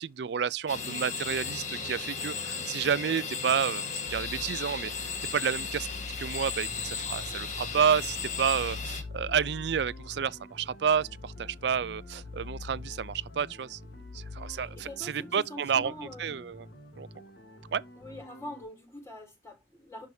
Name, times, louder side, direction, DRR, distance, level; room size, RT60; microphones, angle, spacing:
voice 1, 0.0-5.9 6.2-13.8 14.1-15.9 16.2-16.7 17.0-17.1 17.7-17.8, right 7 dB, 65° right, 0.4 m, -30 dB
sound 1, 0.7-9.0, left 5 dB, 40° left, 1.5 m, -36 dB
sound 2, 4.1-15.0, left 4 dB, 85° left, 0.7 m, -44 dB
sound 3, 6.6-18.6, equal, 70° left, 2.2 m, -50 dB
voice 2, 14.4-16.4 18.0-20.1, left 1 dB, 15° left, 4.1 m, -44 dB
11.0 x 4.8 x 2.7 m
head